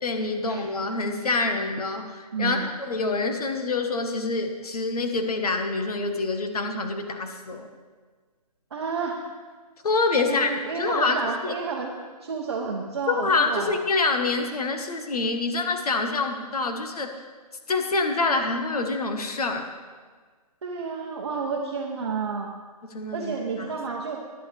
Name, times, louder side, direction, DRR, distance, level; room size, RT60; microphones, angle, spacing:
voice 1, 0.0-7.7 9.8-10.5 10.7-11.5 13.1-17.1 17.7-19.7 22.9-23.7, left 3 dB, 65° left, 5 dB, 1.4 m, -26 dB
voice 2, 2.3-2.7 8.7-9.2 10.2-11.9 12.2-13.8 20.6-22.5 23.1-24.2, right 5 dB, 40° right, -1 dB, 0.9 m, -30 dB
12.5 x 10.5 x 3.4 m, 1.5 s
hypercardioid pair, 180°, 20 cm